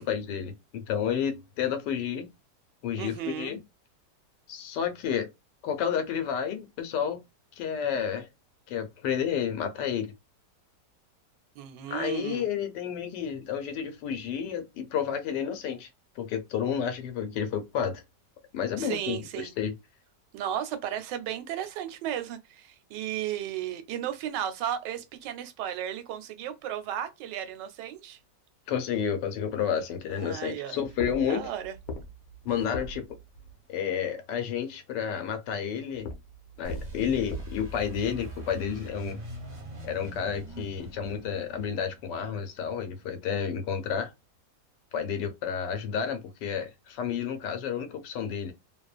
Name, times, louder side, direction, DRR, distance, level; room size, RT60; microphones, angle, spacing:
voice 1, 0.0-2.3 2.8-3.6 4.5-5.3 5.6-7.2 7.6-8.3 8.7-10.1 11.9-15.9 16.2-18.0 18.5-19.7 28.7-31.5 32.4-33.1 33.7-36.1 36.6-39.2 39.8-44.1 44.9-48.5, left 8 dB, 80° left, 1.3 m, -31 dB
voice 2, 3.0-3.6 11.6-12.5 18.8-19.5 20.3-28.2 30.1-30.8 31.3-31.8, right 10 dB, 85° right, 1.2 m, -34 dB
sound 1, 30.8-33.6 35.9-37.4, left 1 dB, 65° left, 1.1 m, -40 dB
sound 2, 36.6-43.2, right 1 dB, 40° right, 0.6 m, -42 dB
2.9 x 2.1 x 2.3 m
omnidirectional pair, 1.9 m